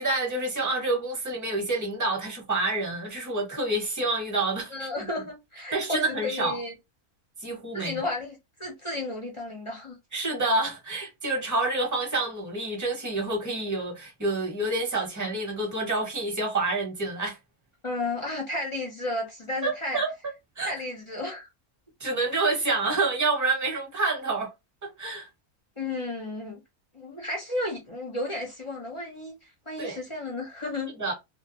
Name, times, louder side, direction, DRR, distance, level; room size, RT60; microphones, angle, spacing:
voice 1, 0.0-4.9 5.7-6.6 7.4-8.0 10.1-17.4 19.6-20.1 20.6-20.7 22.0-24.5 24.8-25.3 29.8-30.0 31.0-31.1, right 2 dB, 15° right, 0.8 m, -28 dB
voice 2, 4.7-6.7 7.7-10.0 17.8-20.0 20.7-21.5 25.8-26.6 26.9-30.9, left 2 dB, 40° left, 0.4 m, -33 dB
2.4 x 2.3 x 2.9 m
omnidirectional pair, 1.5 m